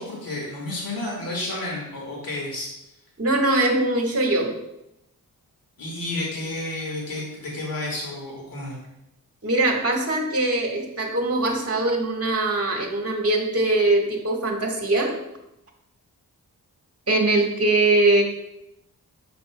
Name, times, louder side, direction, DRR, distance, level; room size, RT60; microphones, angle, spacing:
voice 1, 0.0-2.7 5.8-8.8, left 2 dB, 65° left, -2 dB, 1.8 m, -31 dB
voice 2, 3.2-4.5 9.4-15.1 17.1-18.2, right 2 dB, 40° right, 1 dB, 1.6 m, -22 dB
6.8 x 6.7 x 2.2 m, 0.86 s
cardioid pair, 65°, 37 cm